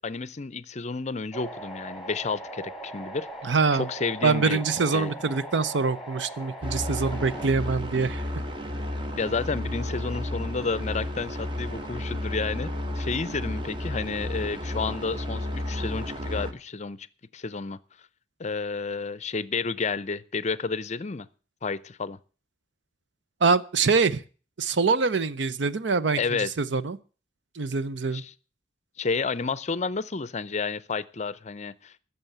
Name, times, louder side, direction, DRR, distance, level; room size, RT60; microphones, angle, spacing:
voice 1, 0.0-3.3 3.7-4.6 4.9-5.1 9.1-17.1 17.3-17.8 18.4-21.3 21.6-22.2 26.2-26.5 28.1-28.3 29.0-32.0, left 4 dB, 35° left, 18 dB, 0.6 m, -31 dB
sound 1, 1.3-7.5, right 2 dB, ahead, 2.7 m, -39 dB
voice 2, 3.4-3.9 4.2-8.2 23.4-24.2 24.6-27.0 27.6-28.2, right 4 dB, 70° right, 15 dB, 0.7 m, -24 dB
sound 2, 6.6-16.5, left 1 dB, 25° right, 1.2 m, -32 dB
14.5 x 6.9 x 7.9 m, 0.39 s
head